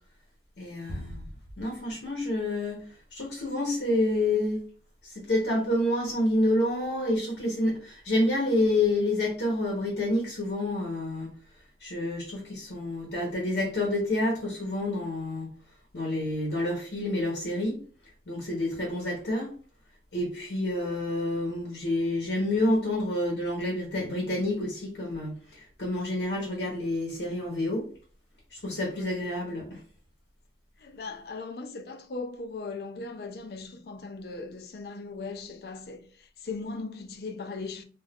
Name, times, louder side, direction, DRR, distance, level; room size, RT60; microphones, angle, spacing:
voice 1, 0.6-1.2 1.6-2.8 3.1-4.6 5.0-11.3 11.8-15.5 15.9-17.7 18.3-19.5 20.1-27.9 28.5-29.8, left 1 dB, 75° left, 0.9 m, -28 dB
voice 2, 29.0-29.4 30.8-37.8, left 3 dB, 60° left, 0.4 m, -38 dB
3.4 x 2.4 x 2.3 m
head